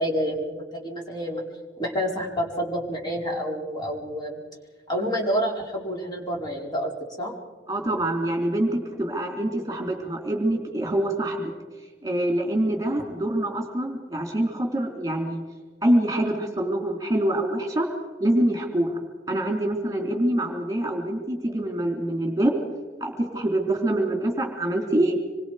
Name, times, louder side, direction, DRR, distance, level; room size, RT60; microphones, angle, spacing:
voice 1, 0.0-1.4 1.8-4.4 4.9-7.3, equal, 25° left, -1 dB, 4.8 m, -28 dB
voice 2, 7.7-11.5 12.0-15.4 15.8-17.9 18.2-19.0 19.3-22.5 23.0-25.1, right 1 dB, 20° right, 1 dB, 3.5 m, -25 dB
26.5 x 24.0 x 5.1 m, 1.4 s
head